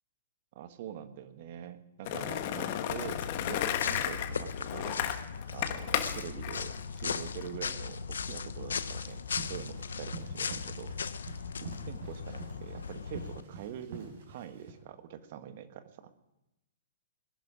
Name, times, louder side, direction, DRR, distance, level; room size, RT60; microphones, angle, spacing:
voice 1, 0.5-5.1 5.5-10.9 11.6-16.1, right 10 dB, 55° right, 11 dB, 1.2 m, -45 dB
Skateboard, 2.0-7.5, left 11 dB, 50° left, 1.3 m, -34 dB
sound 1, 2.9-13.4, left 6 dB, 80° left, 0.7 m, -38 dB
sound 2, 9.0-14.7, right 4 dB, 70° right, 5.5 m, -47 dB
20.0 x 11.0 x 5.1 m, 0.92 s
hypercardioid pair, 125°, 0 cm